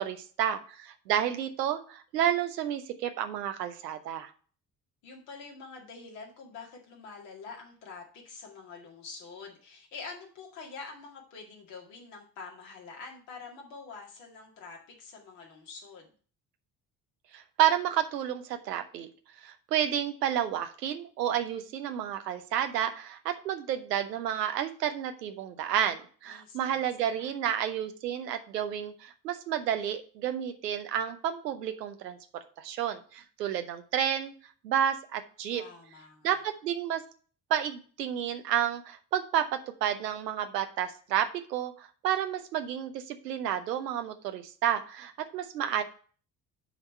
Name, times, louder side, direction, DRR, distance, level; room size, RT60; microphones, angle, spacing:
voice 1, 0.0-4.3 17.3-19.1 19.4-32.2 32.6-34.3 34.6-35.6 36.2-37.0 37.5-45.8, right 10 dB, 75° right, 7 dB, 0.9 m, -30 dB
voice 2, 5.0-16.1 26.3-26.8 27.1-27.3 35.5-36.5 45.7-45.8, left 4 dB, 65° left, 0 dB, 2.1 m, -46 dB
9.7 x 3.6 x 5.5 m, 0.42 s
figure-of-eight pair, 50°, 49 cm